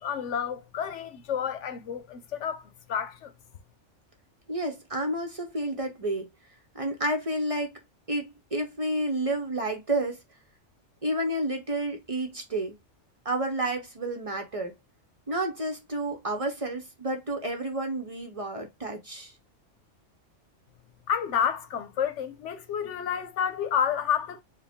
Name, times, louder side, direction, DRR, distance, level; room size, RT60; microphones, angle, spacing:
voice 1, 0.0-2.6 2.9-3.3 21.1-24.4, left 8 dB, 85° left, 1.0 m, -30 dB
voice 2, 4.5-6.3 6.7-7.8 8.1-10.2 11.0-12.8 13.2-14.8 15.3-19.3, right 1 dB, 35° right, 0.7 m, -30 dB
4.9 x 2.2 x 3.5 m
omnidirectional pair, 1.2 m